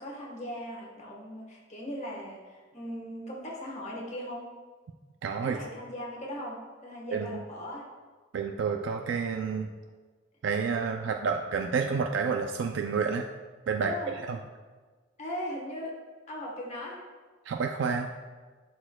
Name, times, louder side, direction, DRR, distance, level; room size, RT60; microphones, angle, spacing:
voice 1, 0.0-4.5 5.4-7.8 13.8-14.1 15.2-15.9 16.3-17.0, left 1 dB, 35° left, -2 dB, 1.2 m, -38 dB
voice 2, 5.2-5.6 7.1-7.4 8.3-9.7 10.4-13.2 13.7-13.9 14.3-14.4 17.5-18.1, right 5 dB, 65° right, 4 dB, 0.3 m, -29 dB
11.5 x 4.4 x 2.2 m, 1.4 s
head